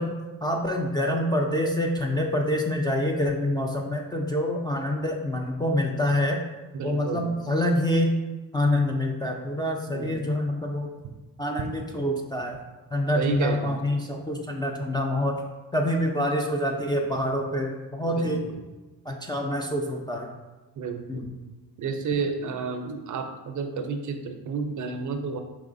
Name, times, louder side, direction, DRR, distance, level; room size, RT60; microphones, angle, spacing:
voice 1, 0.0-6.4 6.8-8.1 8.5-10.9 11.4-12.6 12.9-15.4 15.7-18.5 19.1-20.4 21.1-21.4, left 1 dB, 10° left, 0 dB, 0.3 m, -26 dB
voice 2, 6.7-7.3 9.9-10.3 13.1-13.7 18.2-18.6 20.8-21.3 21.8-25.4, right 5 dB, 50° right, 6 dB, 0.5 m, -31 dB
4.7 x 3.0 x 2.5 m, 1.1 s
supercardioid pair, 70°, 41 cm